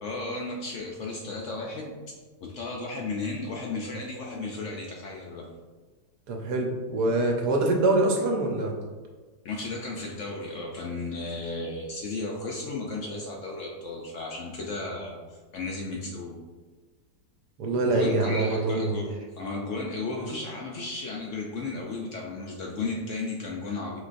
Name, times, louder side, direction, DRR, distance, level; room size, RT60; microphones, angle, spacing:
voice 1, 0.0-2.0 2.4-5.5 9.4-16.4 17.8-24.0, left 3 dB, 70° left, -1 dB, 0.7 m, -34 dB
voice 2, 6.3-8.7 17.6-19.0, right 2 dB, 80° right, 1 dB, 1.3 m, -24 dB
5.2 x 3.2 x 2.5 m, 1.3 s
omnidirectional pair, 1.7 m